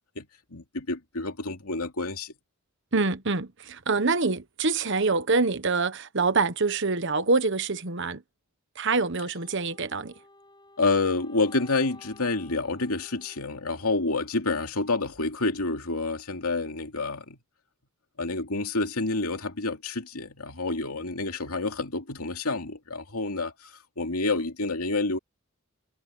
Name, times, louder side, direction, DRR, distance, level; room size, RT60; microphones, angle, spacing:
voice 1, 0.2-2.3 10.8-17.4 18.2-25.2, left 3 dB, 90° left, 2.7 m, -28 dB
voice 2, 2.9-8.2 8.8-10.1, right 3 dB, 55° right, 1.2 m, -25 dB
Wind instrument woodwind instrument, 9.3-14.4, left 2 dB, 20° left, 6.8 m, -54 dB
head